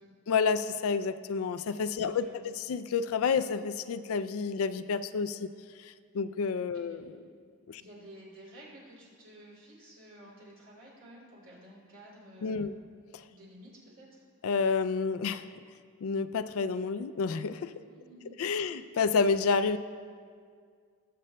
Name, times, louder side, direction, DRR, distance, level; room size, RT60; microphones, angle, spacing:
voice 1, 0.3-5.5 5.8-7.2 7.7-7.8 12.4-12.7 13.1-13.2 14.4-15.5 16.0-17.7 18.4-19.8, left 5 dB, 70° left, 12 dB, 0.3 m, -29 dB
voice 2, 2.0-2.5 6.7-7.0 7.8-12.8 13.3-14.2 17.9-18.3 18.6-18.8, equal, 55° right, -5 dB, 2.8 m, -52 dB
20.0 x 7.6 x 2.2 m, 2.1 s
head